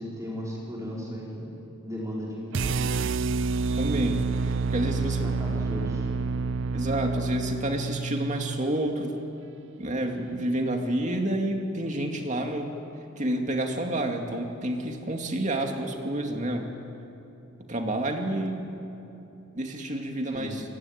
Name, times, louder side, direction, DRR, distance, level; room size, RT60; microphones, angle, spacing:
voice 1, 0.0-1.6 1.8-2.9 4.8-6.1 20.3-20.6, equal, 15° right, -4 dB, 4.7 m, -36 dB
sound 1, 2.5-8.7, right 4 dB, 60° right, 0.5 m, -28 dB
voice 2, 3.8-5.3 6.7-9.2 9.8-12.7 13.2-16.7 17.7-18.8 19.6-20.6, right 1 dB, 35° right, 3 dB, 2.4 m, -29 dB
28.5 x 19.0 x 8.9 m, 2.9 s
head